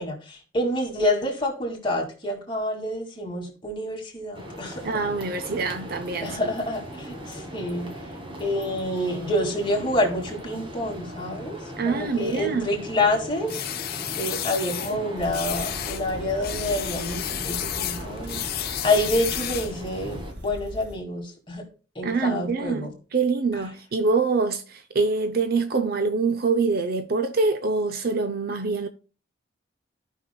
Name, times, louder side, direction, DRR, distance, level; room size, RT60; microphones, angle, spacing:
voice 1, 0.0-4.8 6.2-7.9 8.4-11.6 11.8-21.6 22.0-22.9, left 1 dB, 25° left, 2.2 m, -28 dB
sound 1, 4.3-20.3, equal, 30° right, 1.3 m, -38 dB
voice 2, 4.8-6.4 11.8-12.7 22.0-28.9, right 4 dB, 55° right, 0.5 m, -25 dB
sound 2, 13.5-14.9 15.3-16.0 16.4-19.8, left 12 dB, 55° left, 0.7 m, -32 dB
sound 3, 15.2-21.0, equal, 85° right, 3.8 m, -40 dB
15.0 x 5.6 x 2.2 m
head